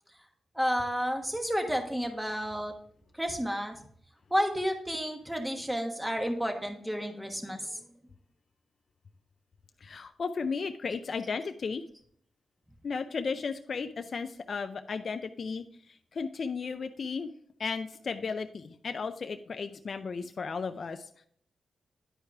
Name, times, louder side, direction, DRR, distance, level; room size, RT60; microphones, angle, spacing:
voice 1, 0.5-2.7 3.1-3.8 4.3-7.8, equal, 5° right, 4 dB, 1.3 m, -31 dB
voice 2, 9.8-11.8 12.8-17.3 17.6-21.3, left 5 dB, 60° left, 8 dB, 0.4 m, -35 dB
9.9 x 4.8 x 3.4 m, 0.62 s
cardioid pair, 65°, 0 cm